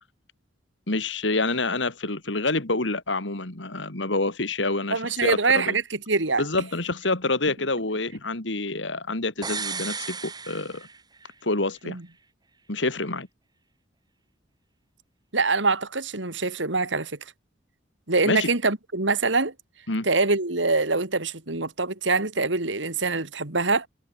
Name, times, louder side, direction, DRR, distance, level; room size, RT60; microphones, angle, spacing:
voice 1, 0.9-5.8 6.4-10.9 11.4-12.0 12.7-13.3 18.2-18.5 19.9-20.1, left 2 dB, 70° left, 3.0 m, -27 dB
voice 2, 4.9-6.4 11.8-12.0 15.3-17.1 18.1-19.5 20.0-23.9, right 3 dB, 70° right, 2.7 m, -24 dB
sound 1, 9.4-11.3 11.6-11.7, right 5 dB, 20° right, 2.4 m, -34 dB
head